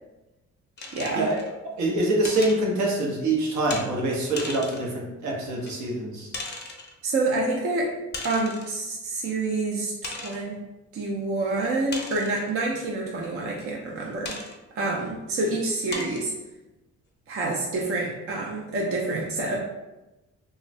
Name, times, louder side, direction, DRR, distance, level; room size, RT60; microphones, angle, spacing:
sound 1, 0.8-1.5 2.2-2.6 3.7-3.9 4.4-4.9 5.7-5.8 6.3-6.9 8.1-8.8 9.3-9.4 10.0-10.4 11.9-12.5 14.2-14.6 15.2-15.3 15.9-16.3, left 3 dB, 35° left, 0.5 m, -36 dB
voice 1, 0.9-1.3 7.0-8.0 8.2-10.6 10.9-14.4 14.7-16.3 17.3-19.6, right 2 dB, 50° right, -2 dB, 0.5 m, -27 dB
voice 2, 1.8-6.3, right 2 dB, 70° right, -2 dB, 0.9 m, -25 dB
2.5 x 2.3 x 3.1 m, 1.0 s
cardioid pair, 90°, 30 cm